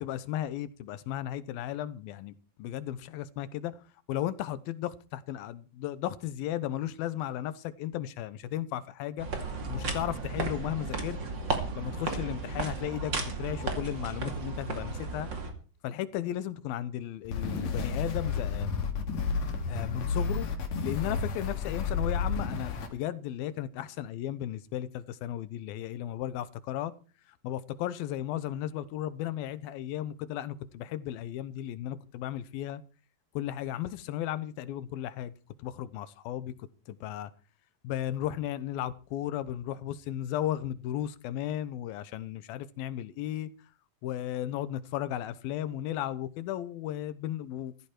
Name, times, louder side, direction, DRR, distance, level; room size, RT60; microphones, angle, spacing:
voice 1, 0.0-3.8 4.1-9.3 9.7-11.2 11.7-15.3 15.8-18.7 19.7-20.5 20.8-26.9 27.4-32.8 33.3-35.3 35.6-37.3 37.8-43.5 44.0-47.7, left 12 dB, 80° left, 2.7 m, -35 dB
sound 1, 9.2-15.5, right 3 dB, 35° right, 2.6 m, -34 dB
sound 2, 17.2-22.9, left 5 dB, 55° left, 3.2 m, -31 dB
15.0 x 14.5 x 4.5 m
omnidirectional pair, 4.2 m